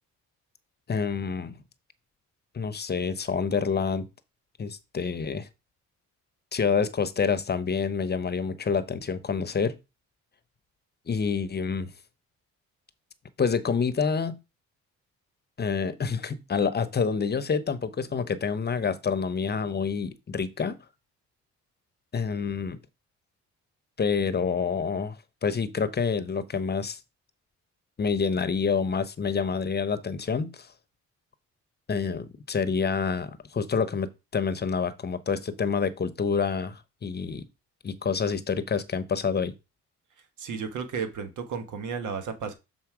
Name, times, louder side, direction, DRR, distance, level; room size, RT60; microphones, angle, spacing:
voice 1, 0.9-1.6 2.5-4.1 4.6-5.5 6.5-9.8 11.1-11.9 13.4-14.4 15.6-20.8 22.1-22.8 24.0-25.2 25.4-27.0 28.0-30.7 31.9-37.5 37.8-39.5, left 5 dB, 35° left, 0.9 m, -27 dB
voice 2, 40.4-42.5, right 6 dB, 75° right, 1.6 m, -33 dB
7.1 x 4.3 x 4.9 m
cardioid pair, 90°, 30 cm